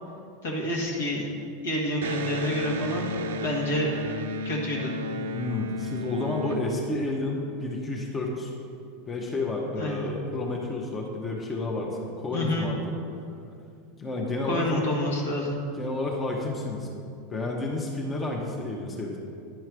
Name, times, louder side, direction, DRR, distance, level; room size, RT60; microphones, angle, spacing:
voice 1, 0.4-1.3 1.6-4.0 4.4-4.9 9.8-10.1 12.3-12.7 14.4-15.6, left 1 dB, 70° left, -2 dB, 1.6 m, -28 dB
Electric guitar, 2.0-7.5, equal, 70° right, 0.5 m, -33 dB
voice 2, 5.3-8.5 9.1-12.9 14.0-14.8 15.8-16.9 17.3-19.2, left 2 dB, 25° left, -1 dB, 1.0 m, -30 dB
10.0 x 4.6 x 4.6 m, 2.5 s
figure-of-eight pair, 85°, 0 cm